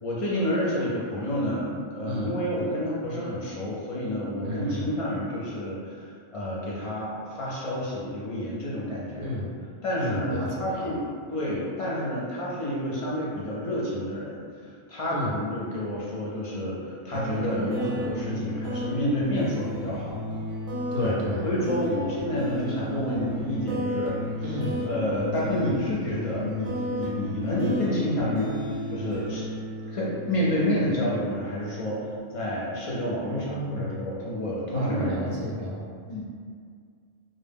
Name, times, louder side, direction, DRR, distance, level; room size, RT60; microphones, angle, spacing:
voice 1, 0.0-9.3 9.8-11.0 11.3-14.4 14.9-20.2 21.0-21.2 21.4-24.4 24.9-28.6 28.9-29.5 29.9-35.4 36.1-36.2, equal, 45° left, -6 dB, 0.4 m, -29 dB
voice 2, 4.4-4.9 9.2-9.5 10.0-11.0 15.1-15.3 20.9-21.5 24.4-24.8 33.3-34.0 34.7-35.9, equal, 75° right, -5 dB, 0.8 m, -32 dB
sound 1, 17.1-32.2, left 1 dB, 50° right, 0.5 m, -33 dB
2.1 x 2.0 x 3.3 m, 2.1 s
omnidirectional pair, 1.0 m